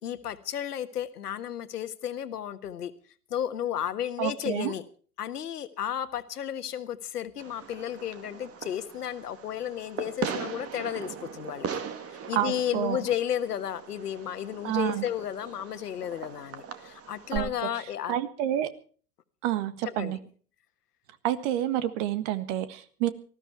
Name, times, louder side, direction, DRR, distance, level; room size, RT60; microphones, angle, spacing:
voice 1, 0.0-2.9 3.3-4.8 5.2-11.7 12.3-18.2 20.0-20.2, left 10 dB, 75° left, 11 dB, 1.5 m, -33 dB
voice 2, 4.2-4.7 12.3-13.0 14.6-15.0 17.3-17.5 18.1-18.7 19.4-20.2 21.2-23.1, right 12 dB, 50° right, 13 dB, 1.7 m, -28 dB
Fireworks, 7.4-17.4, right 7 dB, 30° right, 2.1 m, -39 dB
19.0 x 14.0 x 4.5 m, 0.42 s
figure-of-eight pair, 90°, 47 cm